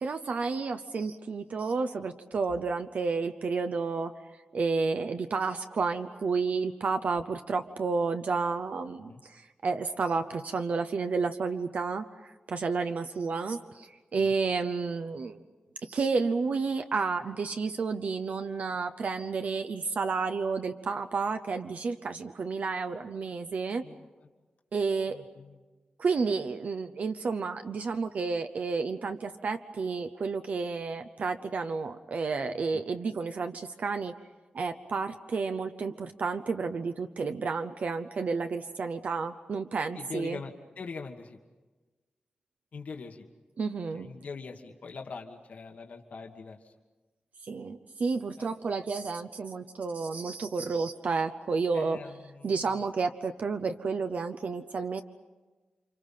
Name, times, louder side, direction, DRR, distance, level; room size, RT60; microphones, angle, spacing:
voice 1, 0.0-4.1 4.5-15.4 15.8-23.8 24.7-25.2 26.0-34.1 34.5-40.4 43.6-44.1 47.4-52.0 52.4-55.0, right 4 dB, 60° right, 7 dB, 0.8 m, -31 dB
voice 2, 23.8-24.3 25.1-25.6 32.5-32.8 39.9-41.4 42.7-43.2 43.9-46.7 48.4-48.5 51.7-52.6, left 4 dB, 65° left, 2 dB, 1.7 m, -43 dB
30.0 x 26.5 x 5.7 m, 1.2 s
wide cardioid pair, 140°, 3 cm